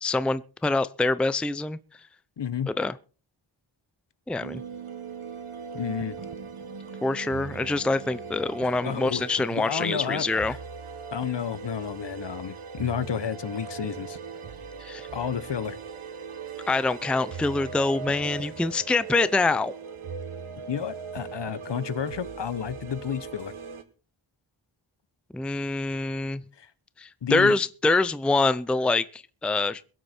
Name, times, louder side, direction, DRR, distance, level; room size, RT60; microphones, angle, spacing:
voice 1, 0.0-1.8 2.7-3.0 4.3-4.6 7.0-10.6 14.8-15.1 16.7-19.7 25.3-26.4 27.0-29.8, left 3 dB, ahead, 0.5 m, -25 dB
voice 2, 2.4-2.7 5.7-6.2 8.6-10.6 11.1-14.2 15.1-15.8 20.7-23.5 26.6-26.7 27.2-27.5, left 8 dB, 55° left, 1.1 m, -31 dB
sound 1, 4.4-23.8, right 6 dB, 75° right, 1.7 m, -39 dB
22.5 x 8.1 x 4.4 m
wide cardioid pair, 125°, 50 cm